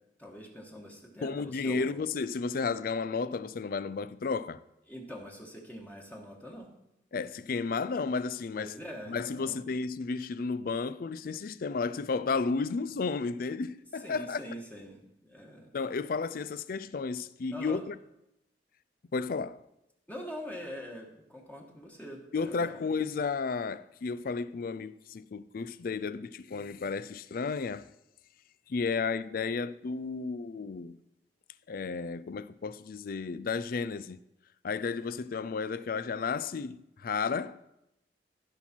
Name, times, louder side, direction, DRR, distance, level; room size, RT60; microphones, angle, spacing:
voice 1, 0.2-2.0 4.9-6.7 8.5-9.7 14.0-15.7 17.5-17.8 20.1-22.8, equal, 10° left, 1.5 m, -44 dB
voice 2, 1.2-4.6 7.1-8.7 9.1-14.4 15.7-18.0 19.1-19.6 22.3-27.9 28.7-31.0 31.7-34.2 34.6-37.6, left 4 dB, 55° left, 0.4 m, -33 dB
15.0 x 5.8 x 4.4 m
head